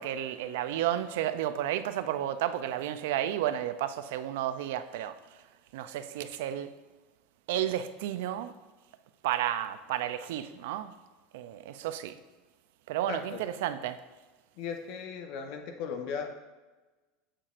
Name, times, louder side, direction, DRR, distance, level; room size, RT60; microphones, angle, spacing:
voice 1, 0.0-6.7 7.5-8.6 9.2-11.0 11.3-12.2 12.9-14.0, right 11 dB, 80° right, 0.4 m, -32 dB
voice 2, 13.1-13.4 14.6-16.3, left 6 dB, 55° left, 0.9 m, -37 dB
7.5 x 6.5 x 2.5 m
supercardioid pair, 140°, 0 cm